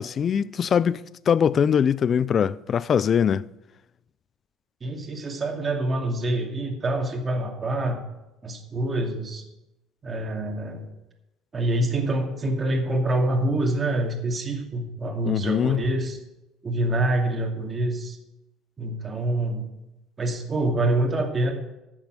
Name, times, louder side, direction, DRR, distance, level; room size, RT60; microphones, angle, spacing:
voice 1, 0.0-3.4 15.3-15.8, left 7 dB, 40° left, 0.4 m, -22 dB
voice 2, 4.8-8.0 8.4-9.4 10.0-10.9 11.5-16.2 16.6-18.2 18.8-19.6 20.2-21.5, right 1 dB, 30° right, 2.5 m, -26 dB
11.0 x 7.4 x 7.7 m
supercardioid pair, 100°, 0 cm